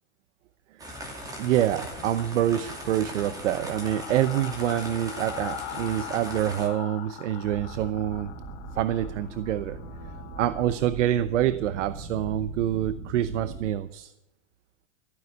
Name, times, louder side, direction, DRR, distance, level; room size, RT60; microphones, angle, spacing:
sound 1, 0.8-6.7, equal, 10° right, 2.5 m, -39 dB
voice 1, 1.4-8.3 8.7-9.8 10.4-14.1, right 12 dB, 85° right, 14 dB, 0.9 m, -26 dB
sound 2, 1.9-10.8, left 11 dB, 50° left, 3.2 m, -42 dB
sound 3, 7.4-13.7, right 3 dB, 30° right, 2.1 m, -40 dB
14.5 x 9.7 x 8.2 m, 0.91 s
supercardioid pair, 165°, 35 cm